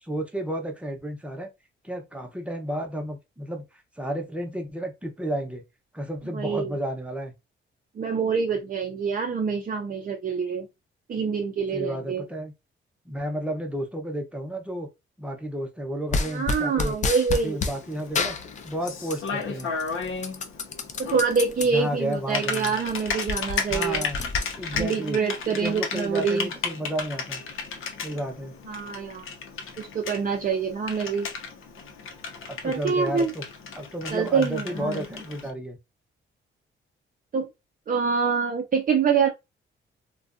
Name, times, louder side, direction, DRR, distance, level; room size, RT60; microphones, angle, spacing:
voice 1, 0.0-1.5 1.8-3.6 4.0-5.6 5.9-7.3 11.7-12.5 13.1-14.9 15.2-17.0 17.4-18.4 18.6-19.7 21.7-22.8 23.7-24.2 24.5-25.2 25.5-27.4 28.0-28.5 32.5-33.4 33.7-35.8, right 1 dB, 5° right, 0.7 m, -32 dB
voice 2, 6.3-6.7 8.0-10.7 11.1-12.2 16.3-17.6 21.0-24.1 24.7-26.5 28.7-29.2 29.8-31.3 32.6-33.3 34.1-35.0 37.3-37.5 37.9-39.3, right 5 dB, 40° right, 0.5 m, -26 dB
sound 1, 16.1-17.8 18.1-19.3 19.6-21.7 22.1-22.2 22.4-24.8, left 4 dB, 35° left, 0.4 m, -29 dB
Typing, 17.4-35.5, left 5 dB, 75° left, 0.7 m, -35 dB
2.4 x 2.2 x 2.5 m
cardioid pair, 100°, 21 cm